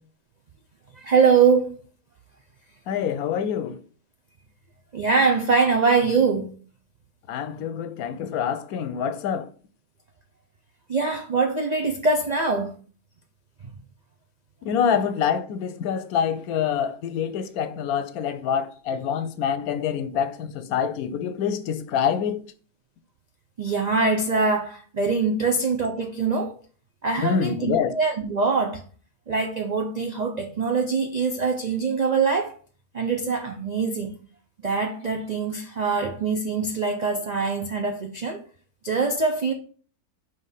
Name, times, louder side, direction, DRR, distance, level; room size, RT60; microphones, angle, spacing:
voice 1, 0.9-1.8 4.9-6.6 10.9-12.8 23.6-26.5 27.0-28.8 29.3-32.6 32.9-34.2 34.6-38.4 38.8-39.5, right 4 dB, 80° right, 0.3 m, -23 dB
voice 2, 2.9-3.8 7.3-9.5 14.6-22.4 27.2-27.9, left 7 dB, 75° left, 1.1 m, -26 dB
5.4 x 3.2 x 5.6 m
omnidirectional pair, 1.6 m